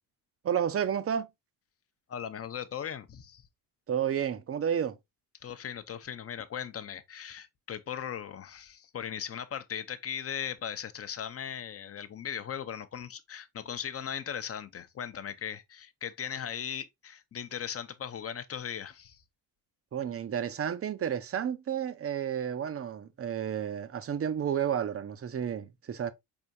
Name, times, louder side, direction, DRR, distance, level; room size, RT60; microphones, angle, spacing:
voice 1, 0.4-1.3 3.9-5.0 19.9-26.1, right 8 dB, 30° right, 0.6 m, -31 dB
voice 2, 2.1-3.4 5.4-19.2, left 8 dB, 30° left, 0.7 m, -38 dB
4.3 x 3.6 x 2.7 m
supercardioid pair, 60°, 45 cm